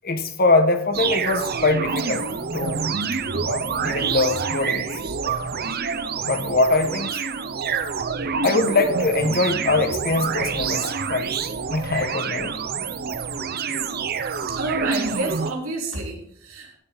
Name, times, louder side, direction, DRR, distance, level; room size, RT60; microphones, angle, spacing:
voice 1, 0.0-2.3 2.5-2.8 3.3-4.9 5.2-5.3 6.2-7.2 8.4-11.4 11.7-12.6, left 3 dB, 45° left, 8 dB, 1.3 m, -22 dB
sound 1, 0.9-15.5, right 5 dB, 50° right, 0.7 m, -27 dB
voice 2, 14.4-16.7, right 2 dB, 85° right, -1 dB, 3.6 m, -29 dB
15.5 x 7.6 x 4.0 m, 0.68 s
head